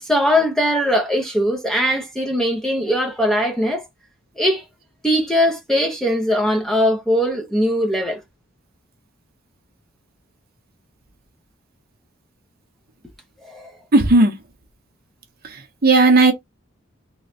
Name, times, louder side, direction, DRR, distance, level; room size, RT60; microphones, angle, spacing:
voice 1, 0.0-3.8 4.4-4.6 5.0-8.2 13.4-13.7, equal, ahead, 0.6 m, -20 dB
voice 2, 13.9-14.4 15.5-16.3, right 2 dB, 45° right, 0.8 m, -14 dB
3.1 x 2.3 x 4.1 m
head